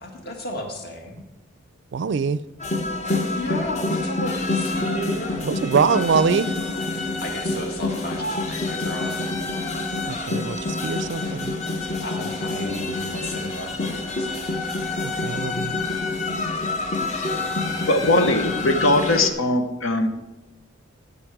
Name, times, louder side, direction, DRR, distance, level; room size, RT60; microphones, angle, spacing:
voice 1, 0.0-1.2 3.3-5.5 7.2-9.2 12.0-14.4 17.8-17.9, left 1 dB, 50° left, 2 dB, 1.8 m, -34 dB
voice 2, 1.9-2.4 5.4-6.5 10.0-11.5 15.0-15.7, right 5 dB, 60° right, 16 dB, 0.4 m, -23 dB
sound 1, 2.6-19.3, left 2 dB, 35° left, 0.9 m, -27 dB
voice 3, 17.9-20.1, left 2 dB, 90° left, 7 dB, 1.0 m, -20 dB
14.5 x 5.5 x 4.8 m, 1.0 s
head